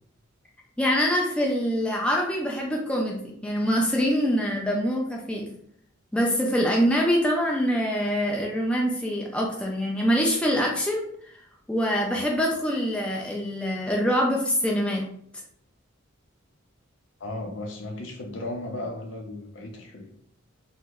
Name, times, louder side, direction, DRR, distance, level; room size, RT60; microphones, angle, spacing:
voice 1, 0.8-5.5 6.1-11.1 11.7-15.1, equal, 5° left, -1 dB, 0.3 m, -24 dB
voice 2, 17.2-20.0, left 1 dB, 65° left, 3 dB, 0.5 m, -35 dB
2.9 x 2.1 x 3.4 m, 0.69 s
head